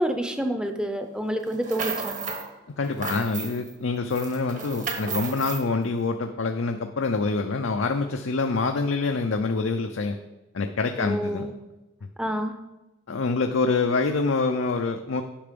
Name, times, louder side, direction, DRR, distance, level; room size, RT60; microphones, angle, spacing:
voice 1, 0.0-2.2 11.0-11.5 12.2-12.5, equal, 5° right, 6 dB, 0.6 m, -28 dB
sound 1, 1.5-2.5 2.8-3.7 4.1-5.6, right 5 dB, 40° right, 1.1 m, -33 dB
voice 2, 2.8-10.2 10.5-11.5 12.0-12.1 13.1-15.2, left 3 dB, 75° left, 5 dB, 0.5 m, -26 dB
10.0 x 5.9 x 5.2 m, 1.0 s
head